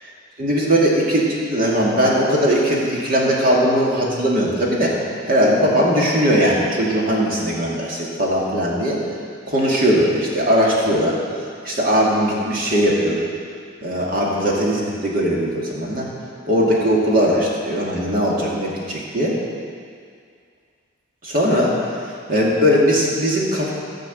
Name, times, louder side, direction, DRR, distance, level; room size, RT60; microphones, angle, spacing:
voice 1, 0.4-4.9 5.3-9.0 9.5-11.2 11.6-13.2 13.8-16.1 16.5-19.4 21.2-21.7 22.3-23.7, equal, 45° right, -4 dB, 2.3 m, -19 dB
14.0 x 5.3 x 7.9 m, 2.2 s
head